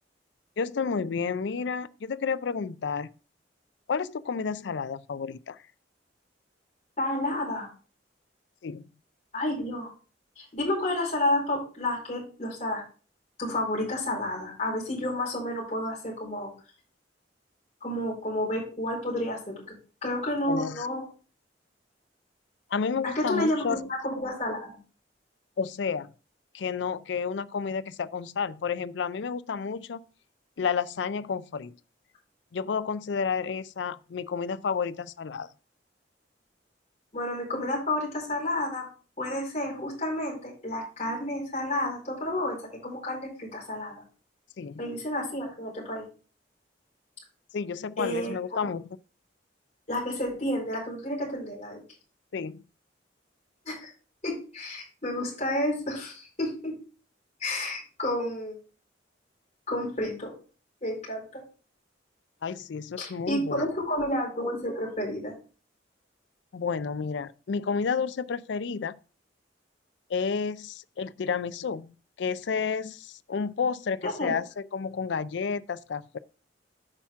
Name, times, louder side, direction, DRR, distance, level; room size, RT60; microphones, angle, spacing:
voice 1, 0.6-3.1 3.9-5.6 8.6-8.9 20.5-20.9 22.7-23.8 25.6-26.1 26.5-30.0 30.6-31.8 32.5-35.5 44.6-44.8 47.5-48.8 52.3-52.6 62.4-63.7 66.5-69.0 70.1-74.4 74.7-76.2, left 5 dB, 70° left, 0.4 m, -31 dB
voice 2, 7.0-7.7 9.3-9.9 10.4-12.8 13.4-16.5 17.8-19.6 20.0-21.0 23.0-24.8 37.1-38.9 39.2-44.0 44.8-46.1 48.0-48.6 49.9-51.8 53.6-53.9 54.2-56.8 57.4-58.6 59.7-60.3 60.8-61.4 63.0-65.3 74.0-74.4, left 1 dB, 40° left, 4.5 m, -30 dB
8.9 x 5.8 x 3.5 m
head